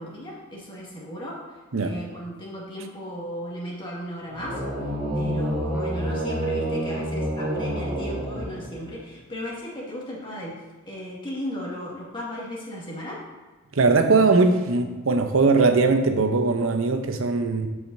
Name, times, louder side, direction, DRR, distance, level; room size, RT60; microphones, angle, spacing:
voice 1, 0.0-4.6 5.1-13.2, equal, 25° left, -5 dB, 2.0 m, -36 dB
sound 1, 4.3-9.0, right 1 dB, 10° right, 2.6 m, -28 dB
voice 2, 13.7-17.7, right 3 dB, 80° right, 7 dB, 0.8 m, -20 dB
14.5 x 4.9 x 2.7 m, 1.3 s
head